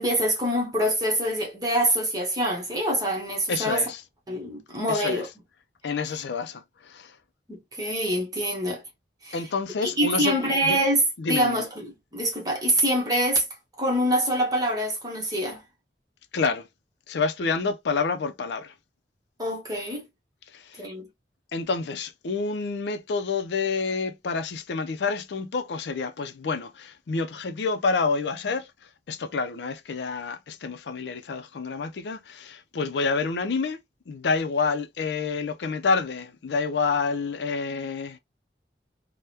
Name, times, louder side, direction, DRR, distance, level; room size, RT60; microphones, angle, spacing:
voice 1, 0.0-3.8 4.3-5.3 7.5-8.8 9.2-9.4 9.8-13.4 13.8-15.6 19.4-20.0 20.8-21.1, right 1 dB, 20° right, 1.0 m, -25 dB
voice 2, 3.5-4.0 4.9-5.2 5.8-7.1 9.3-10.4 10.6-10.8 11.2-11.6 16.3-16.7 17.1-18.7 20.5-20.8 21.5-28.7 29.1-33.8 34.1-38.2, left 4 dB, 75° left, 0.4 m, -28 dB
3.4 x 2.1 x 2.7 m
head